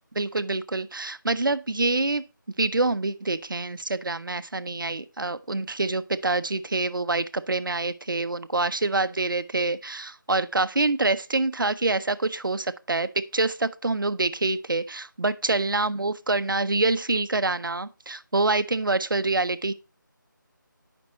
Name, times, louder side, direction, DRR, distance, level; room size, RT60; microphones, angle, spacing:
voice 1, 0.2-2.2 2.6-19.7, right 3 dB, 80° right, 0.5 m, -26 dB
7.0 x 5.3 x 4.1 m
figure-of-eight pair, 160°, 11 cm